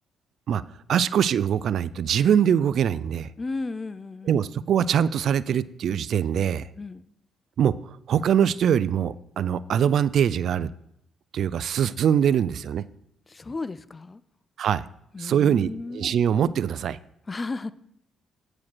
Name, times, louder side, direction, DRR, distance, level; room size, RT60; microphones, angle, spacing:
voice 1, 0.9-3.3 4.2-6.7 7.6-10.7 11.3-12.8 14.6-14.8 15.2-17.0, right 8 dB, 65° right, 17 dB, 0.3 m, -23 dB
voice 2, 3.4-4.4 6.8-7.1 13.3-14.2 15.1-16.2 17.3-17.7, left 3 dB, 30° left, 16 dB, 0.4 m, -34 dB
8.7 x 4.8 x 6.1 m, 0.76 s
cardioid pair, 80°, 0 cm